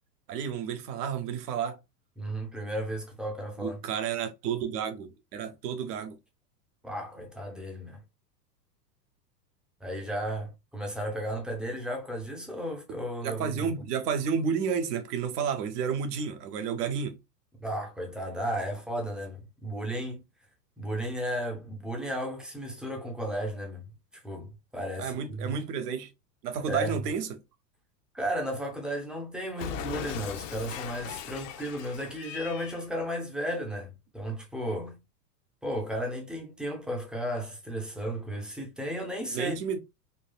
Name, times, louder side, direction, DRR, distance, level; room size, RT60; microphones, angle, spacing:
voice 1, 0.3-1.8 3.6-6.2 13.2-17.2 25.0-26.1 26.4-27.3 39.3-39.8, right 7 dB, 65° right, 0.9 m, -31 dB
voice 2, 2.2-3.8 6.8-8.0 9.8-13.7 17.6-20.2 20.8-23.8 24.1-25.6 26.7-27.0 28.1-35.0 35.6-39.6, equal, ahead, 0.5 m, -34 dB
Cat, 29.6-32.9, left 8 dB, 50° left, 0.6 m, -39 dB
3.9 x 2.3 x 2.2 m
hypercardioid pair, 100°, 50 cm